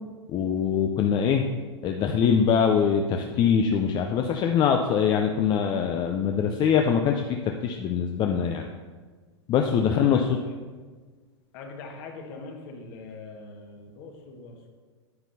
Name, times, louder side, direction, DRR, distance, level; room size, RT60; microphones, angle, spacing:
voice 1, 0.3-1.4 1.8-7.4 7.6-8.7 9.5-10.2, left 7 dB, 30° left, 4 dB, 0.5 m, -23 dB
voice 2, 9.8-10.6 11.5-14.7, left 3 dB, 50° left, 2 dB, 1.6 m, -42 dB
9.5 x 8.9 x 2.8 m, 1.4 s
figure-of-eight pair, 95°, 15 cm